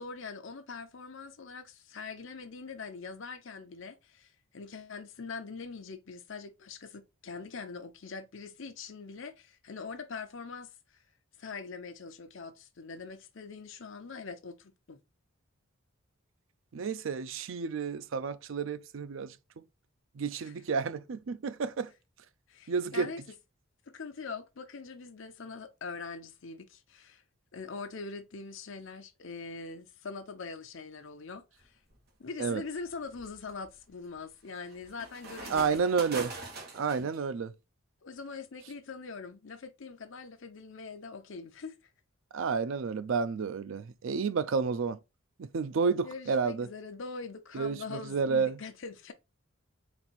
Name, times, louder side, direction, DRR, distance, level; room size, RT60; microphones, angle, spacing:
voice 1, 0.0-10.7 11.4-15.0 20.4-20.5 22.5-23.2 23.9-27.2 27.5-31.8 32.2-35.8 38.0-41.8 46.0-49.1, left 4 dB, 65° left, 0.6 m, -43 dB
voice 2, 16.7-19.6 20.1-21.9 22.7-23.1 32.4-32.6 35.5-36.3 36.7-37.5 42.3-45.0 45.4-46.7 47.5-48.6, right 5 dB, 65° right, 0.4 m, -31 dB
sound 1, 31.6-32.0 32.6-37.2, right 3 dB, 50° right, 1.2 m, -43 dB
4.2 x 2.6 x 4.1 m
head